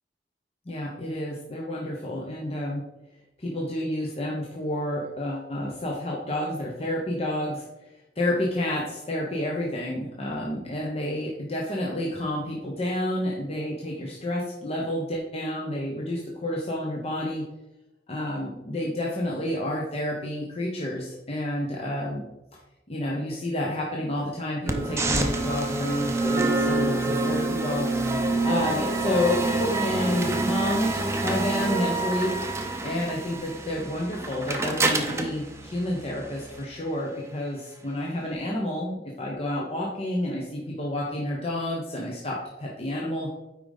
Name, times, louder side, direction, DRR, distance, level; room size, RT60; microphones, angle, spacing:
voice 1, 0.7-2.8 3.4-7.9 8.2-17.4 18.1-22.2 22.9-27.9 28.4-32.4 32.8-43.3, left 1 dB, 35° left, -3 dB, 1.0 m, -29 dB
sound 1, 24.7-36.6, right 2 dB, 15° right, 0.7 m, -27 dB
8.6 x 4.9 x 4.1 m, 0.95 s
head